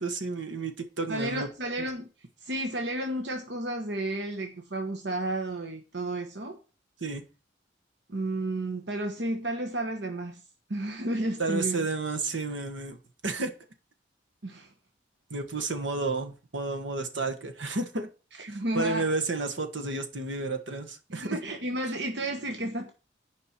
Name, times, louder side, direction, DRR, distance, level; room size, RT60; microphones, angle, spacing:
voice 1, 0.0-1.5 7.0-7.2 11.4-13.0 13.2-13.5 15.3-18.1 18.5-21.4, right 3 dB, 85° right, 5 dB, 1.5 m, -31 dB
voice 2, 1.1-2.1 2.4-6.6 8.1-10.4 10.7-11.9 14.4-14.7 18.4-19.0 21.1-22.9, right 1 dB, 65° right, 4 dB, 1.1 m, -32 dB
9.9 x 5.3 x 5.9 m, 0.35 s
head